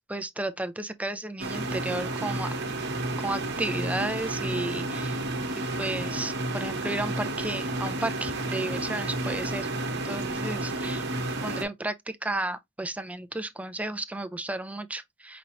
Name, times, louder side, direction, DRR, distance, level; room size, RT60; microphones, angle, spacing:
voice 1, 0.1-2.5 3.2-5.2 5.6-9.7 10.0-11.0 11.4-15.4, right 2 dB, 5° right, 0.4 m, -33 dB
sound 1, 1.4-11.6, right 2 dB, 55° right, 1.0 m, -31 dB
5.2 x 2.9 x 2.7 m
head